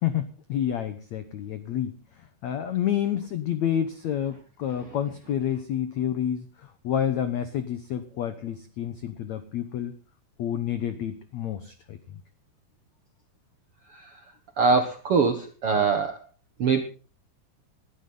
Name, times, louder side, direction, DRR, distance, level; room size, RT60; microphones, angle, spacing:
voice 1, 0.0-9.9 10.4-12.2, left 10 dB, 80° left, 10 dB, 1.6 m, -29 dB
voice 2, 14.6-16.2 16.6-16.8, right 5 dB, 65° right, 6 dB, 1.4 m, -23 dB
20.0 x 12.5 x 3.9 m, 0.36 s
omnidirectional pair, 4.8 m